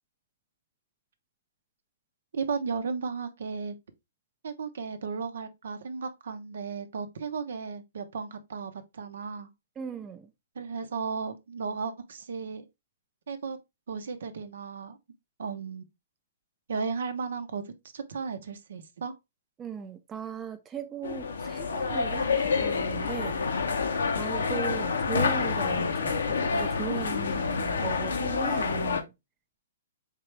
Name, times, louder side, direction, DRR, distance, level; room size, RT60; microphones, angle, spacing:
voice 1, 2.3-3.7 4.4-9.5 10.6-12.6 13.3-13.6 13.9-15.0 15.4-15.8 16.7-17.6 17.9-19.1, right 5 dB, 70° right, 0.6 m, -35 dB
voice 2, 9.8-10.3 19.6-23.4 24.1-29.1, right 7 dB, 20° right, 0.4 m, -38 dB
sound 1, 21.0-29.0, left 5 dB, 75° left, 0.7 m, -28 dB
3.7 x 3.3 x 3.1 m
hypercardioid pair, 130°, 0 cm